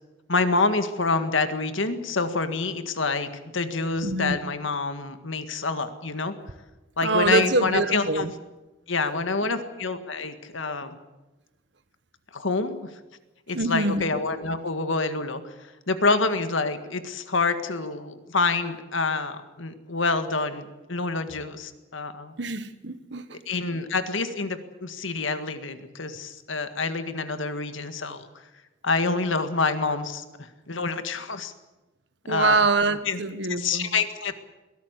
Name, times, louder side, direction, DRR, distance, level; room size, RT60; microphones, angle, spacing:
voice 1, 0.3-6.3 7.0-8.3 8.9-11.0 12.3-12.8 13.5-22.3 23.5-28.3 28.8-31.5 32.3-32.7 33.1-33.2 33.6-34.4, left 3 dB, 75° left, 9 dB, 1.8 m, -27 dB
voice 2, 4.0-4.4 7.0-8.3 13.5-14.0 22.4-23.2 32.3-33.9, right 3 dB, 60° right, 12 dB, 1.4 m, -24 dB
23.0 x 17.5 x 8.2 m, 1.1 s
head